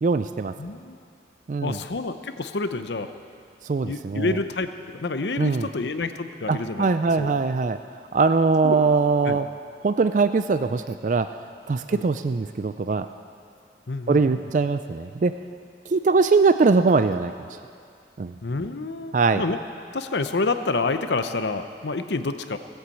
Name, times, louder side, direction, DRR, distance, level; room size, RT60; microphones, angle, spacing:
voice 1, 0.0-0.5 1.5-1.8 3.6-4.4 5.4-5.7 6.5-7.8 8.1-9.5 9.8-11.3 11.7-13.1 14.1-15.4 15.9-17.3 18.2-18.3 19.1-19.4, right 4 dB, 45° right, 10 dB, 0.4 m, -21 dB
voice 2, 0.6-1.0 1.6-3.1 3.8-6.9 7.2-7.3 8.6-8.8 9.2-9.4 11.9-12.1 13.9-14.4 18.4-19.6 19.9-22.6, left 3 dB, 80° left, 9 dB, 0.7 m, -28 dB
17.5 x 8.0 x 8.4 m, 2.3 s
head